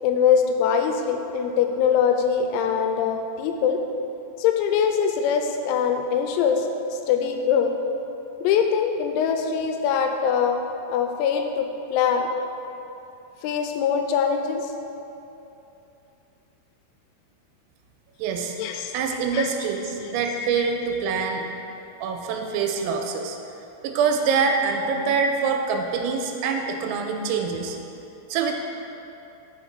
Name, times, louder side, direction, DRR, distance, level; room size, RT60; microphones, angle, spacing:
voice 1, 0.0-3.8 4.4-7.7 8.4-10.6 10.9-12.3 13.4-14.7 18.6-18.9 19.3-19.5 20.6-20.7, left 7 dB, 90° left, 5 dB, 3.5 m, -23 dB
voice 2, 18.2-18.5 18.9-21.4 22.0-23.4 23.8-27.8 28.3-28.5, right 5 dB, 85° right, 3 dB, 3.3 m, -25 dB
8.7 x 5.8 x 6.3 m, 2.9 s
omnidirectional pair, 6.0 m